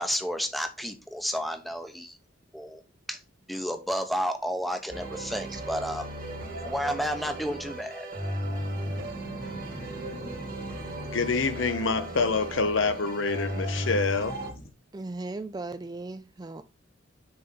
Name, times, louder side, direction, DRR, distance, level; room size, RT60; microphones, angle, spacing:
voice 1, 0.0-2.2 2.5-2.8 3.1-3.2 3.5-6.1 6.6-8.1, equal, ahead, 0.8 m, -31 dB
sound 1, 4.9-14.5, right 1 dB, 45° right, 1.7 m, -35 dB
sound 2, 8.4-14.7, left 1 dB, 45° left, 1.2 m, -47 dB
voice 2, 11.0-14.4, left 4 dB, 65° left, 0.7 m, -26 dB
voice 3, 14.9-16.6, right 2 dB, 20° right, 0.4 m, -37 dB
6.4 x 4.3 x 4.1 m
head